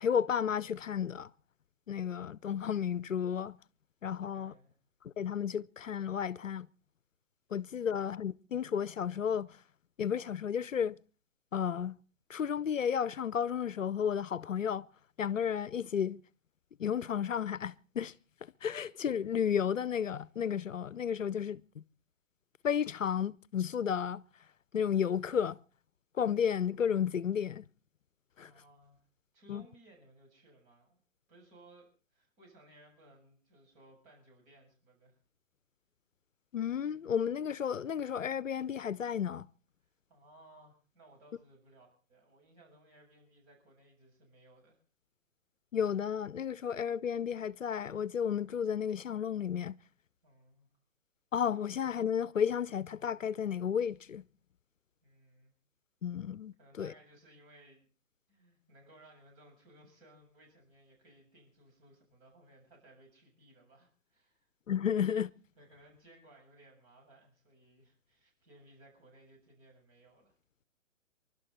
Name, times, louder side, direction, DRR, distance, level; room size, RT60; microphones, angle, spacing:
voice 1, 0.0-1.3 1.9-3.6 4.0-4.5 5.2-6.7 7.5-9.6 10.0-11.0 11.5-12.0 12.3-14.9 15.2-16.2 16.8-18.1 18.6-21.8 22.6-24.2 24.7-25.6 26.2-27.6 28.4-28.5 29.5-29.6 36.5-39.5 45.7-49.8 51.3-54.2 56.0-56.9 64.7-65.3, left 8 dB, 70° left, 0.8 m, -32 dB
voice 2, 4.3-4.8 7.8-8.0 28.4-29.0 29.3-31.0 31.3-35.2 40.1-44.8 50.2-50.7 55.0-55.5 56.6-57.9 58.3-64.5 65.6-70.3, right 1 dB, 25° right, 7.5 m, -61 dB
27.5 x 12.0 x 4.2 m
figure-of-eight pair, 140°, 40 cm